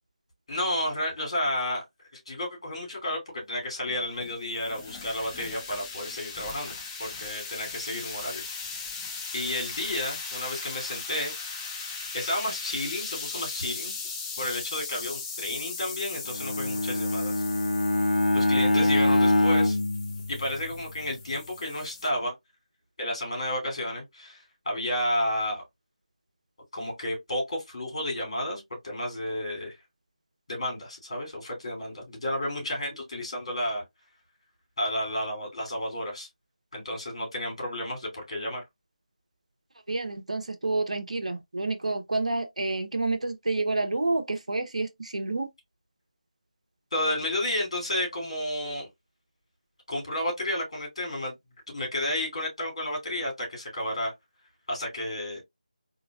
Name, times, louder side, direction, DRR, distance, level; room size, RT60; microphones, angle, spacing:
voice 1, 0.5-1.8 2.1-8.4 9.3-11.5 12.1-14.0 14.4-17.3 18.3-19.8 20.3-22.3 23.0-25.6 26.7-29.8 30.5-33.8 34.8-36.3 36.7-38.6 46.9-48.9 49.9-51.3 51.7-54.1 54.7-55.4, left 1 dB, 45° left, 2.9 m, -31 dB
sound 1, 3.9-22.1, left 4 dB, 10° left, 0.4 m, -38 dB
Bowed string instrument, 16.3-20.9, left 2 dB, 75° left, 0.6 m, -24 dB
voice 2, 39.9-45.5, right 2 dB, 60° right, 0.8 m, -29 dB
4.2 x 2.9 x 2.4 m
figure-of-eight pair, 160°, 4 cm